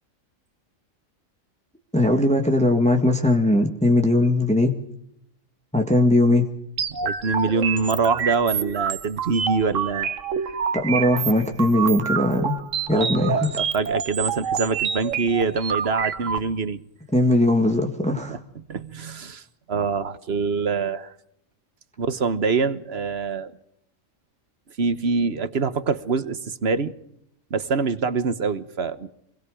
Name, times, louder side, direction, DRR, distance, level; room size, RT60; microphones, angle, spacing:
voice 1, 1.9-4.8 5.7-6.5 10.7-12.6 12.9-13.5 17.1-18.4, left 1 dB, 5° left, 1.8 m, -19 dB
sound 1, 6.8-16.4, right 7 dB, 70° right, 1.5 m, -27 dB
voice 2, 7.0-10.2 12.9-16.8 18.3-19.4 19.7-21.1 22.0-23.5 24.8-26.9 27.5-29.1, right 4 dB, 55° right, 1.3 m, -25 dB
27.0 x 21.5 x 5.1 m
omnidirectional pair, 1.4 m